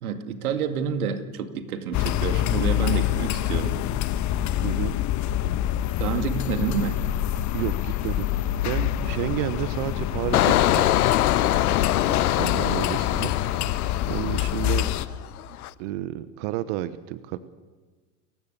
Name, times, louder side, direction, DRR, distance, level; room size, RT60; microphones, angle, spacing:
voice 1, 0.0-3.8 6.0-7.0, right 7 dB, 75° right, 8 dB, 2.3 m, -28 dB
sound 1, 1.9-15.1, left 12 dB, 40° left, 1.2 m, -26 dB
voice 2, 4.6-4.9 7.5-8.3 8.6-10.9 12.3-13.3 14.1-14.9 15.8-17.4, right 14 dB, 55° right, 14 dB, 1.1 m, -31 dB
Engine, 10.3-15.0 15.4-15.7, left 13 dB, 80° left, 0.8 m, -23 dB
28.5 x 15.5 x 6.9 m, 1.3 s
hypercardioid pair, 95°, 44 cm